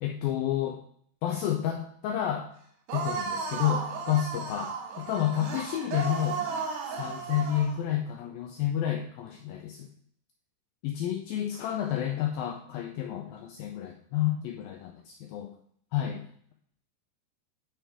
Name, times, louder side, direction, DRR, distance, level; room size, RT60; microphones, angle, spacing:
voice 1, 0.0-0.8 1.2-2.5 2.9-6.4 6.9-9.9 10.8-15.6 15.9-16.2, left 11 dB, 85° left, 2 dB, 2.1 m, -30 dB
sound 1, 2.9-7.8, right 5 dB, 75° right, 3.2 m, -34 dB
10.5 x 5.6 x 3.6 m, 0.62 s
omnidirectional pair, 4.9 m